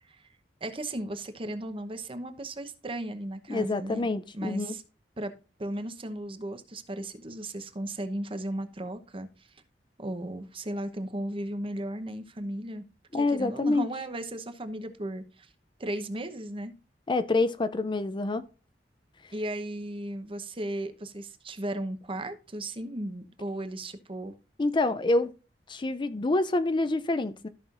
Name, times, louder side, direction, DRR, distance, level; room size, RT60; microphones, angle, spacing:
voice 1, 0.6-4.1 4.3-4.8 5.2-5.3 5.6-9.3 10.0-12.8 13.1-15.5 15.8-16.7 19.3-24.3, right 1 dB, 30° right, 0.9 m, -35 dB
voice 2, 3.5-4.7 13.1-13.9 17.1-18.4 24.6-25.3 25.7-27.5, left 2 dB, 25° left, 0.4 m, -27 dB
13.5 x 5.7 x 2.5 m
head